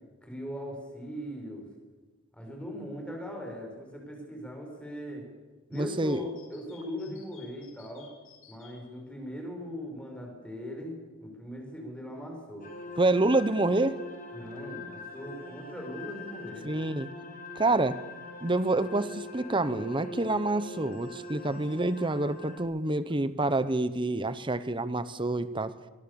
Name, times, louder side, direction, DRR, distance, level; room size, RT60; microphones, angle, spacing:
voice 1, 0.2-1.6 2.3-5.3 5.7-8.1 8.5-12.7 14.3-16.7, equal, 5° left, 1 dB, 6.2 m, -40 dB
sound 1, 5.7-8.8, left 8 dB, 85° left, 7.8 m, -56 dB
voice 2, 5.7-6.2 13.0-14.0 16.6-17.1 17.6-18.0 18.4-25.7, right 2 dB, 25° right, 14 dB, 1.0 m, -27 dB
sound 2, 12.6-22.6, left 2 dB, 45° left, 3.8 m, -43 dB
23.5 x 22.0 x 7.1 m, 1.2 s
head